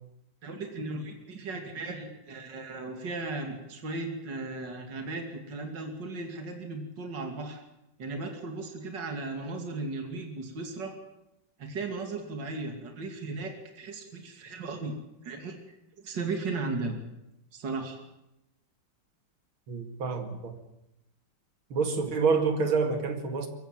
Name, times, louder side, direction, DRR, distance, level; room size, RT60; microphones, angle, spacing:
voice 1, 0.4-7.6 8.0-10.9 11.6-14.9 15.2-17.0 17.5-18.0, right 3 dB, 60° right, 4 dB, 3.2 m, -36 dB
voice 2, 19.7-20.6 21.7-23.5, right 4 dB, 85° right, 6 dB, 3.0 m, -27 dB
23.0 x 15.5 x 9.1 m, 0.89 s
omnidirectional pair, 2.2 m